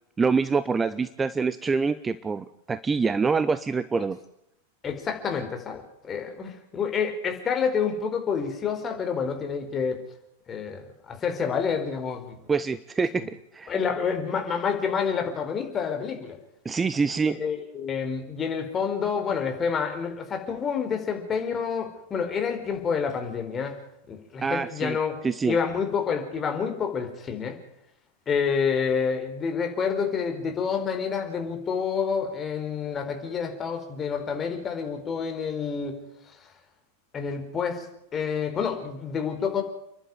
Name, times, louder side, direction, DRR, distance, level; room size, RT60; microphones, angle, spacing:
voice 1, 0.2-4.2 12.5-13.7 16.6-17.4 24.4-25.0 25.2-25.6, right 5 dB, 15° right, 15 dB, 0.8 m, -25 dB
voice 2, 4.8-10.0 10.5-12.4 13.1-13.3 13.7-16.4 17.3-23.8 24.1-25.1 25.4-27.6 28.3-36.0 37.1-37.8 38.1-39.6, left 6 dB, 25° left, 5 dB, 4.4 m, -28 dB
30.0 x 11.5 x 9.5 m, 0.79 s
figure-of-eight pair, 90°, 0 cm